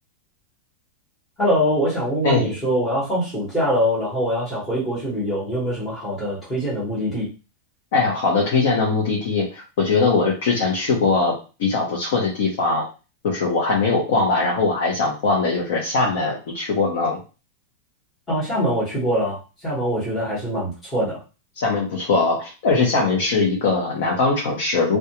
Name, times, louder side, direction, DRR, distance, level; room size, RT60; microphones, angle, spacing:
voice 1, 1.4-7.3 18.3-21.2, equal, 10° left, -10 dB, 1.1 m, -23 dB
voice 2, 2.2-2.6 7.9-12.9 13.2-17.2 21.6-25.0, left 3 dB, 60° left, -2 dB, 0.7 m, -21 dB
2.4 x 2.2 x 2.9 m, 0.32 s
supercardioid pair, 170°, 0 cm